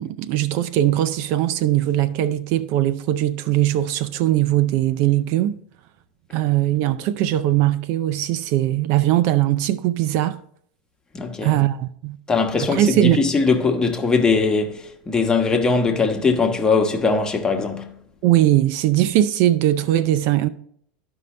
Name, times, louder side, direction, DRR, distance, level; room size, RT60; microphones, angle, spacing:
voice 1, 0.0-5.6 6.3-10.4 11.4-12.2 12.6-13.2 18.2-20.5, right 13 dB, 60° right, 0.4 m, -20 dB
voice 2, 11.1-11.6 12.3-17.9, left 4 dB, 15° left, 1.2 m, -20 dB
13.0 x 5.4 x 3.2 m
supercardioid pair, 125°, 5 cm